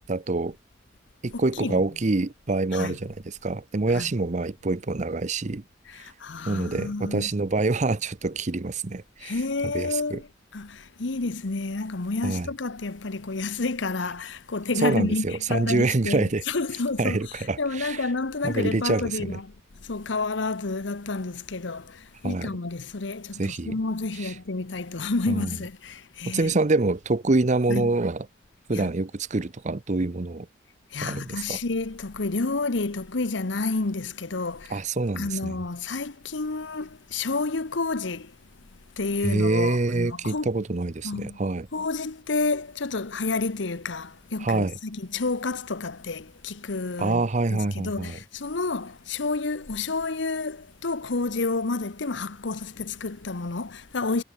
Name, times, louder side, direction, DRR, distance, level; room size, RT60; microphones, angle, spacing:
voice 1, 0.1-0.6 1.2-5.6 6.5-9.4 9.7-10.2 12.2-12.5 14.8-16.4 17.0-18.0 18.4-19.4 22.2-22.5 23.4-23.7 24.2-24.3 25.3-25.5 26.3-28.3 28.7-30.5 31.0-31.6 34.7-35.6 39.2-41.7 44.4-44.7 47.0-48.2, right 3 dB, 40° right, 0.7 m, -26 dB
voice 2, 1.3-1.8 2.7-3.0 3.9-4.1 5.9-7.3 9.2-10.3 10.5-19.5 19.8-26.6 27.7-27.9 28.7-28.9 30.9-34.8 35.2-38.4 39.0-40.5 41.0-41.4 41.7-47.2 47.5-54.2, left 3 dB, 75° left, 1.1 m, -30 dB
head